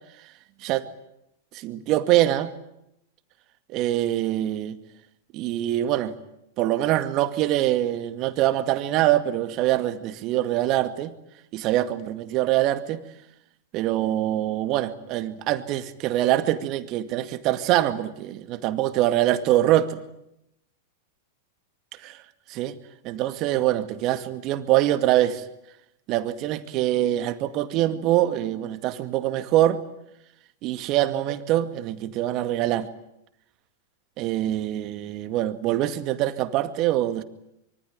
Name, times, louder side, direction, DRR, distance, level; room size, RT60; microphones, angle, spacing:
voice 1, 1.5-2.5 3.7-4.8 5.3-6.1 6.6-11.1 11.5-13.0 13.7-20.0 22.6-22.8 23.0-25.4 26.1-29.8 30.6-32.9 34.2-37.2, right 14 dB, 40° right, 10 dB, 2.1 m, -24 dB
25.5 x 24.0 x 9.0 m, 0.82 s
hypercardioid pair, 100°, 0 cm